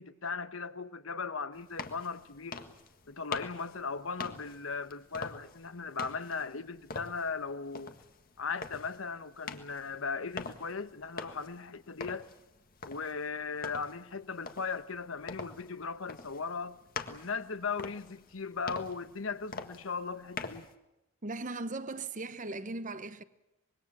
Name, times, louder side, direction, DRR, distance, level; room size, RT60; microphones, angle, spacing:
voice 1, 0.0-2.6 3.1-7.9 8.4-12.3 12.8-16.8 17.1-20.7, left 5 dB, 70° left, 1.1 m, -38 dB
sound 1, 1.5-20.7, left 4 dB, 45° left, 1.6 m, -45 dB
voice 2, 21.2-23.2, right 3 dB, 35° right, 1.0 m, -38 dB
25.0 x 22.0 x 7.4 m
head